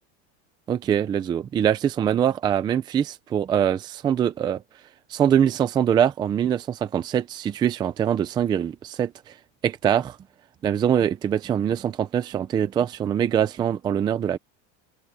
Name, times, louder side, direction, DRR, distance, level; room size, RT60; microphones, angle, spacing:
voice 1, 0.7-4.6 5.1-9.1 9.6-10.2 10.6-14.4, right 9 dB, 15° right, 0.5 m, -23 dB
open air
supercardioid pair, 175°, 34 cm